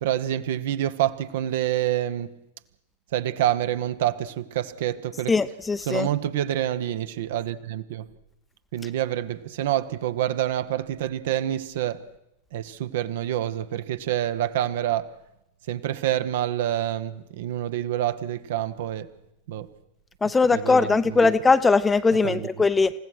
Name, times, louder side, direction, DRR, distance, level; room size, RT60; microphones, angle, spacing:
voice 1, 0.0-2.4 3.1-5.3 5.9-8.1 8.7-12.0 12.5-15.1 15.7-19.1 19.5-19.7 20.5-21.3 22.2-22.5, right 12 dB, 55° right, 1.2 m, -27 dB
voice 2, 5.3-6.1 20.2-22.9, left 4 dB, 10° left, 0.8 m, -20 dB
28.0 x 16.5 x 6.3 m
figure-of-eight pair, 90°, 0 cm